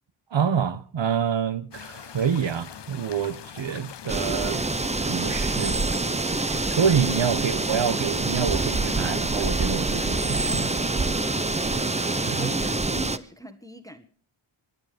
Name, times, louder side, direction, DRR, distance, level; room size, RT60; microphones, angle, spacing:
voice 1, 0.3-4.6 5.1-5.8 6.4-10.7 12.2-12.5, right 7 dB, 60° right, 1.2 m, -27 dB
sound 1, 1.7-12.7, left 9 dB, 55° left, 0.8 m, -42 dB
sound 2, 4.1-13.2, right 3 dB, 15° right, 0.7 m, -26 dB
voice 2, 12.4-14.1, left 1 dB, 5° left, 1.4 m, -39 dB
24.5 x 9.5 x 5.2 m
cardioid pair, 60°, 50 cm